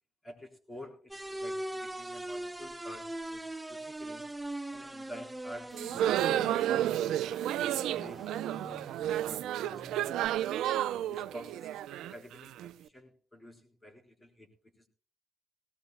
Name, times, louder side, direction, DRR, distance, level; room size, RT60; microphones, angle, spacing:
voice 1, 0.2-4.3 4.7-6.6 7.1-7.7 8.0-8.9 9.3-10.4 11.1-14.5, equal, 15° left, 4 dB, 3.8 m, -50 dB
sound 1, 1.1-10.3, right 1 dB, 10° right, 0.7 m, -42 dB
sound 2, 5.7-12.7, right 12 dB, 85° right, 0.5 m, -31 dB
18.0 x 17.5 x 2.2 m, 0.36 s
cardioid pair, 90°, 0 cm